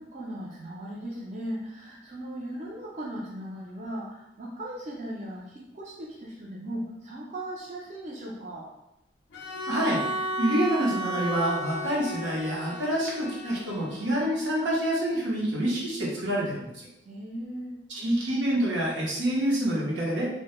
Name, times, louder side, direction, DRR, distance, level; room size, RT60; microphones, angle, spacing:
voice 1, 0.0-8.7 17.0-17.8, right 1 dB, 40° right, -4 dB, 0.4 m, -38 dB
Bowed string instrument, 9.3-14.3, right 1 dB, 80° left, 0.4 m, -34 dB
voice 2, 9.7-10.0 10.4-16.9 17.9-20.3, right 1 dB, 85° right, -4 dB, 0.7 m, -27 dB
2.1 x 2.0 x 2.9 m, 0.86 s
head